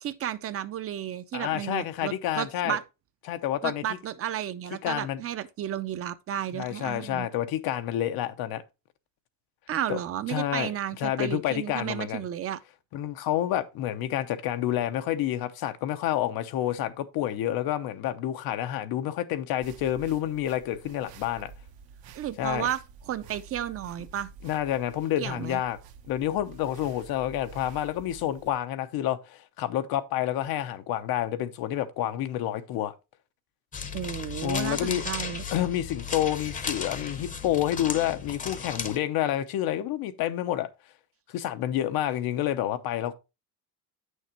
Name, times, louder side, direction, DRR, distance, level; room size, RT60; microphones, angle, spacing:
voice 1, 0.0-2.8 3.6-7.3 9.7-12.6 22.1-22.8 23.1-24.3 25.2-25.6 33.9-35.4, right 11 dB, 40° right, 0.5 m, -33 dB
voice 2, 1.3-2.8 3.3-3.8 4.8-5.2 6.5-8.6 9.9-10.0 10.3-10.7 11.0-12.2 12.9-21.5 22.4-22.7 24.4-25.8 26.1-32.9 34.4-35.0 35.5-40.7 41.3-43.1, left 12 dB, 90° left, 0.9 m, -29 dB
sound 1, 19.6-28.6, right 6 dB, 80° right, 1.0 m, -49 dB
sound 2, 33.7-39.0, left 6 dB, 20° left, 0.7 m, -35 dB
8.9 x 6.4 x 2.9 m
cardioid pair, 165°, 36 cm